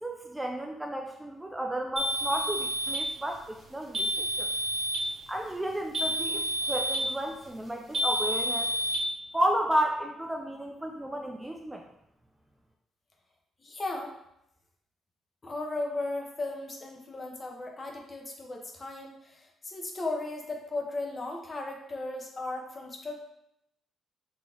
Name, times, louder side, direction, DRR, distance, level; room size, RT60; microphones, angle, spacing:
voice 1, 0.0-4.5 5.3-8.7 9.3-11.8, right 1 dB, 10° right, 2 dB, 0.4 m, -32 dB
sound 1, 2.0-3.1 3.9-5.1 5.9-7.1 7.9-9.0, equal, 40° right, 1.5 m, -29 dB
voice 2, 13.6-14.2 15.4-23.2, left 2 dB, 30° left, 1 dB, 0.9 m, -36 dB
4.0 x 3.0 x 3.7 m, 0.79 s
cardioid pair, 90°, 0 cm